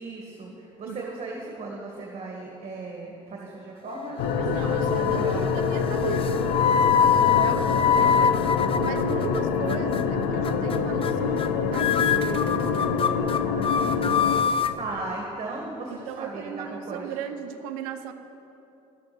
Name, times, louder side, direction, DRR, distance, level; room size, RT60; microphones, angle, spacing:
voice 1, 0.0-5.5 7.4-7.6 14.4-17.1, right 3 dB, 40° right, -1 dB, 2.0 m, -37 dB
sound 1, 3.9-4.5 4.8-5.3 6.1-9.4 9.7-10.0 10.4-10.8 11.0-11.5 11.7-14.7, left 7 dB, 30° left, 0.5 m, -24 dB
sound 2, 4.2-14.4, left 6 dB, 75° left, 0.9 m, -26 dB
voice 2, 4.4-6.6 7.2-13.4 15.9-18.1, right 8 dB, 80° right, 9 dB, 0.7 m, -36 dB
11.5 x 7.7 x 7.6 m, 2.9 s
hypercardioid pair, 65°, 17 cm